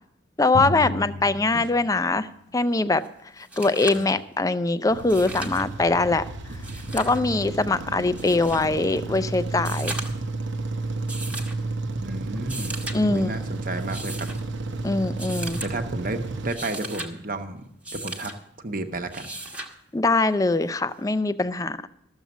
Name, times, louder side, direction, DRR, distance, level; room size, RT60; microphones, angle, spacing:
voice 1, 0.4-2.3 2.5-3.0 3.4-6.2 6.9-9.9 12.9-13.3 14.8-15.6 19.9-21.9, left 3 dB, 15° left, 13 dB, 0.4 m, -22 dB
Drum, 0.5-2.9, left 2 dB, 65° left, 0.8 m, -34 dB
sound 1, 3.0-3.1 3.4-4.1 5.0-5.7 6.5-7.2 8.2-8.7 9.6-10.3 11.1-11.6 12.4-13.0 13.8-14.4 15.2-15.7 16.3-17.1 17.8-18.4 19.1-19.7 21.1-21.2, right 2 dB, 5° right, 1.1 m, -36 dB
sound 2, 4.9-16.5, right 2 dB, 75° right, 0.8 m, -32 dB
voice 2, 8.3-8.7 12.0-12.8 13.1-14.3 15.6-18.3 18.6-19.3, right 2 dB, 45° right, 7 dB, 1.0 m, -33 dB
13.5 x 7.2 x 7.2 m, 0.77 s
head